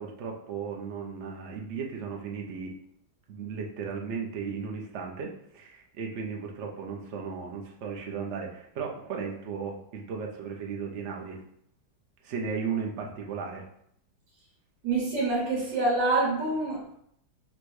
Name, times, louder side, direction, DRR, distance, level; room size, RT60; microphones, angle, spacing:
voice 1, 0.0-2.7 3.3-11.4 12.2-13.6, right 6 dB, 55° right, 0 dB, 0.8 m, -35 dB
voice 2, 14.8-16.9, right 2 dB, 75° right, -5 dB, 2.1 m, -26 dB
4.3 x 2.2 x 4.7 m, 0.70 s
omnidirectional pair, 1.9 m